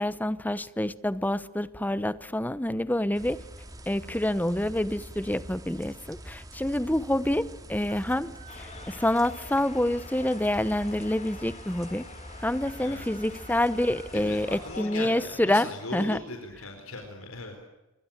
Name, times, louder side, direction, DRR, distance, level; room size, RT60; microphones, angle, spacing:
voice 1, 0.0-3.4 3.9-12.1 12.4-16.2, left 1 dB, 10° left, 0.9 m, -27 dB
sound 1, 3.1-14.8, right 1 dB, 20° right, 2.5 m, -45 dB
Chicken rooster, 7.8-9.7 12.3-14.1, right 4 dB, 35° right, 6.5 m, -53 dB
sound 2, 8.5-15.7, left 4 dB, 35° left, 2.2 m, -47 dB
voice 2, 12.7-13.0 14.1-17.7, left 2 dB, 90° left, 4.6 m, -39 dB
27.0 x 24.5 x 7.5 m
head